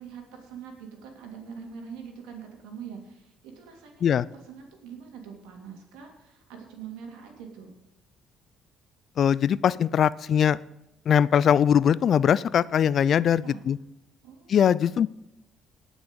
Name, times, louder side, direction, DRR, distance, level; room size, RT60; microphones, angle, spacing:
voice 1, 0.0-7.7 13.4-13.6 14.2-14.6, right 7 dB, 80° right, 2 dB, 2.9 m, -43 dB
voice 2, 9.2-10.6 11.1-13.8 14.5-15.1, left 8 dB, 55° left, 20 dB, 0.4 m, -21 dB
18.5 x 6.2 x 5.3 m, 0.93 s
supercardioid pair, 60°, 0 cm